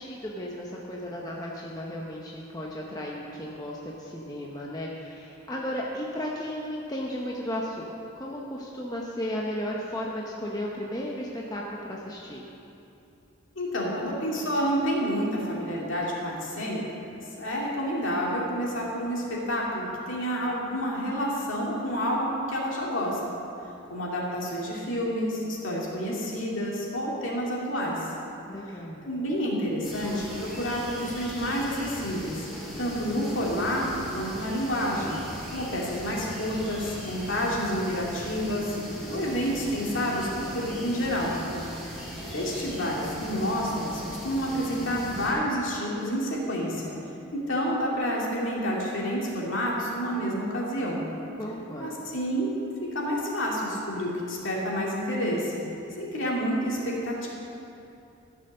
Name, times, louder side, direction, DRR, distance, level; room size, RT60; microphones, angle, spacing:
voice 1, 0.0-12.4 28.5-29.1 51.4-51.9, equal, 15° left, -3 dB, 0.8 m, -34 dB
voice 2, 13.6-16.8 17.1-23.2 23.9-28.1 29.0-32.4 32.8-35.2 35.5-38.8 39.1-41.4 41.8-42.0 42.3-46.9 47.3-51.0 51.8-55.6 56.0-57.3, equal, 60° left, -4 dB, 2.4 m, -29 dB
sound 1, 29.8-45.3, equal, ahead, 2.9 m, -39 dB
14.5 x 6.7 x 6.6 m, 2.8 s
head